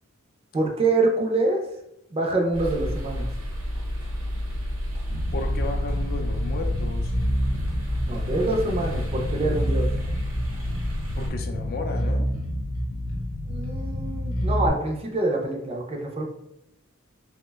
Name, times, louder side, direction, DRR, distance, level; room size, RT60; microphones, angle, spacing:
voice 1, 0.5-1.6 2.1-3.3 8.1-9.9 13.5-16.2, right 2 dB, 30° right, 1 dB, 0.4 m, -25 dB
sound 1, 2.5-11.3, equal, 80° right, 0.8 m, -30 dB
Bass guitar, 5.1-14.7, equal, 90° left, 0.6 m, -28 dB
voice 2, 5.3-7.1 11.2-12.3, left 3 dB, 45° left, 5 dB, 0.4 m, -34 dB
2.8 x 2.1 x 3.3 m, 0.82 s
head